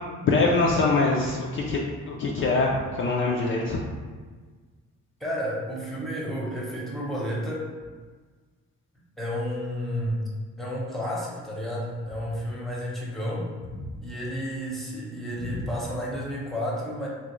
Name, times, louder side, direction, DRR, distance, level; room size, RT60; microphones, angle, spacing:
voice 1, 0.2-1.8 2.1-3.8 15.4-15.6, left 3 dB, 45° left, -2 dB, 0.4 m, -23 dB
voice 2, 5.2-7.7 9.2-10.3 10.6-13.5 14.0-17.1, equal, ahead, -5 dB, 0.8 m, -31 dB
3.2 x 2.5 x 3.0 m, 1.4 s
cardioid pair, 90°, 30 cm